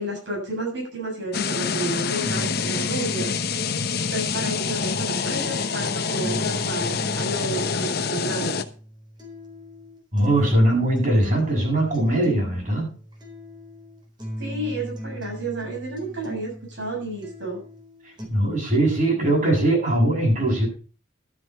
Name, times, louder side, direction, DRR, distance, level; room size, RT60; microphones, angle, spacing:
voice 1, 0.0-3.3 4.1-8.6 14.4-17.6, right 1 dB, 65° right, -1 dB, 7.3 m, -31 dB
sound 1, 1.3-8.6, left 5 dB, 50° left, 0.9 m, -26 dB
sound 2, 2.2-18.2, equal, 25° right, 4.1 m, -38 dB
voice 2, 10.1-12.9 18.0-20.7, right 1 dB, 40° right, -1 dB, 7.9 m, -21 dB
12.5 x 8.2 x 5.6 m, 0.40 s
head